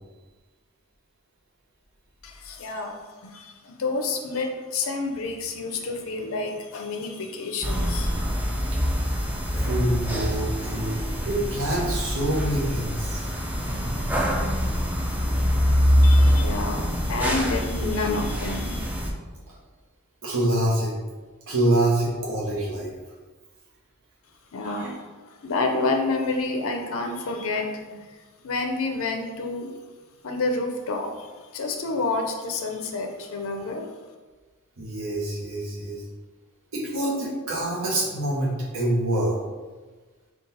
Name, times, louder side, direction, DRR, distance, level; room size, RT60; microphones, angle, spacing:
voice 1, 2.2-8.2 16.0-18.9 24.5-28.1 28.4-29.7 30.2-33.9, left 3 dB, 65° left, 3 dB, 0.5 m, -29 dB
sound 1, 7.6-19.1, equal, 5° right, 0.4 m, -24 dB
voice 2, 9.5-13.3 20.2-20.9 21.5-22.9 24.6-24.9 34.8-36.0 36.7-39.3, right 1 dB, 60° right, -5 dB, 1.0 m, -26 dB
3.9 x 2.4 x 4.0 m, 1.3 s
head